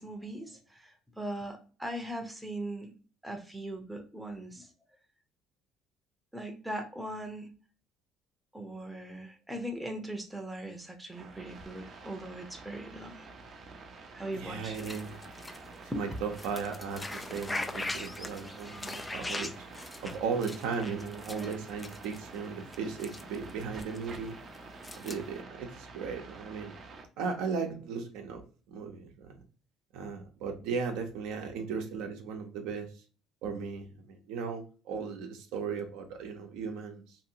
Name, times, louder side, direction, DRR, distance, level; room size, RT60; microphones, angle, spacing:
voice 1, 0.0-2.9 3.2-4.7 6.3-7.5 8.5-13.2 14.1-14.9 15.9-16.0, right 1 dB, 5° right, 4 dB, 0.7 m, -40 dB
sound 1, 11.1-27.1, right 4 dB, 45° right, 0.6 m, -49 dB
voice 2, 14.3-15.2 15.9-19.5 20.0-24.4 24.9-26.8 27.2-29.4 29.9-32.9 33.4-37.2, right 5 dB, 85° right, 3 dB, 0.7 m, -36 dB
sound 2, 14.7-25.4, left 2 dB, 15° left, 0.3 m, -42 dB
2.8 x 2.8 x 2.7 m, 0.37 s
cardioid pair, 105°, 0 cm